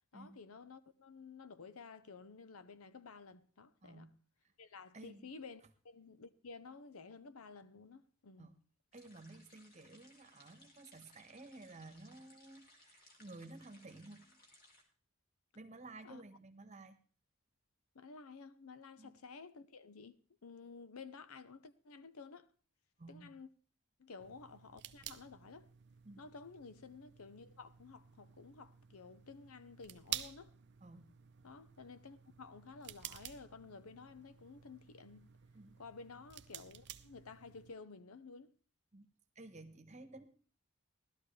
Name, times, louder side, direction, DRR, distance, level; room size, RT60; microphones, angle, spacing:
voice 1, 0.1-4.1 4.6-8.5 16.0-16.2 17.9-22.5 23.1-23.5 24.0-25.7 26.2-30.5 31.4-35.3 35.8-38.5, left 4 dB, 85° left, 0.8 m, -53 dB
voice 2, 3.8-4.1 4.9-5.3 8.4-8.5 8.9-14.4 15.5-17.0 19.0-19.1 23.0-23.3 26.0-26.3 30.8-31.1 35.5-35.8 38.9-39.1 39.3-40.3, right 2 dB, 30° right, 1.1 m, -54 dB
sound 1, 8.9-14.8, left 1 dB, 40° left, 2.7 m, -64 dB
sound 2, 24.2-37.7, right 11 dB, 50° right, 0.6 m, -51 dB
17.0 x 12.5 x 3.3 m
head